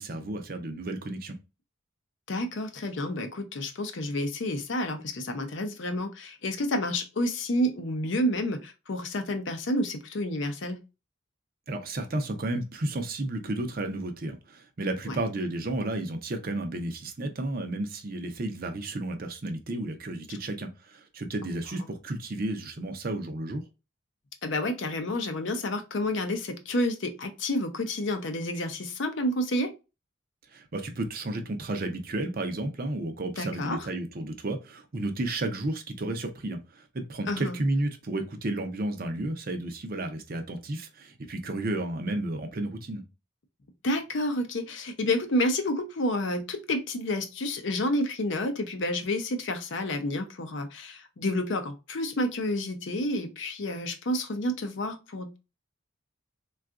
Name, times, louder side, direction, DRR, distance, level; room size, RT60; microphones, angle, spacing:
voice 1, 0.0-1.4 11.7-23.6 30.5-43.0, right 2 dB, 45° right, 0.5 m, -32 dB
voice 2, 2.3-10.8 15.1-15.2 24.4-29.7 33.4-33.9 37.3-37.6 43.8-55.4, left 1 dB, 60° left, 0.5 m, -29 dB
3.7 x 2.3 x 2.4 m
head